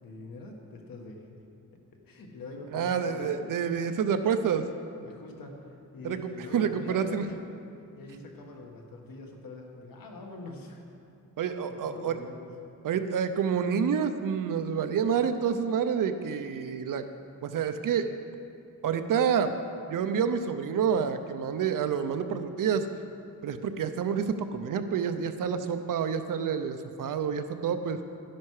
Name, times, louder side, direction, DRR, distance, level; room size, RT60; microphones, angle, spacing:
voice 1, 0.0-1.2 2.1-3.3 5.0-7.4 8.0-10.8 11.8-12.5, left 3 dB, 90° left, 1 dB, 1.6 m, -44 dB
voice 2, 2.7-4.6 6.0-6.2 6.5-7.3 11.4-12.2 12.8-17.1 17.4-18.1 18.8-19.5 19.9-22.9 23.4-28.0, right 7 dB, 70° right, 9 dB, 0.7 m, -28 dB
12.5 x 10.5 x 4.8 m, 2.5 s
wide cardioid pair, 150°, 33 cm